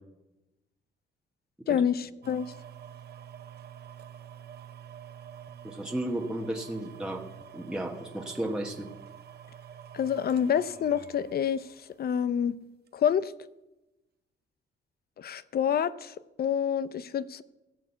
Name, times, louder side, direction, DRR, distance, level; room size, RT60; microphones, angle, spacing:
voice 1, 1.7-2.5 9.9-11.7 12.0-12.5 12.9-13.3 15.2-17.4, left 8 dB, 50° left, 16 dB, 0.6 m, -27 dB
sound 1, 2.2-12.3 12.9-13.0, right 9 dB, 55° right, 0.8 m, -47 dB
voice 2, 5.6-7.2 7.5-8.9, right 1 dB, 5° right, 0 dB, 1.4 m, -33 dB
15.5 x 7.3 x 7.0 m, 1.0 s
cardioid pair, 90°, 20 cm